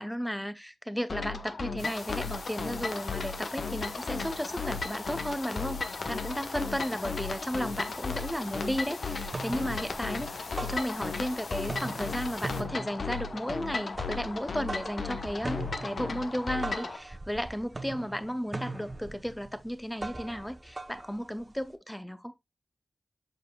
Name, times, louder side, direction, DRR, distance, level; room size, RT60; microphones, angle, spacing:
voice 1, 0.0-22.3, equal, 5° left, 0.8 m, -34 dB
sound 1, 1.1-17.0, left 4 dB, 60° left, 1.0 m, -36 dB
sound 2, 1.8-12.6, left 4 dB, 90° left, 1.5 m, -43 dB
sound 3, 8.5-8.8 9.1-11.3 11.6-21.7, right 2 dB, 25° right, 0.9 m, -41 dB
7.4 x 6.7 x 2.3 m
wide cardioid pair, 125°, 0 cm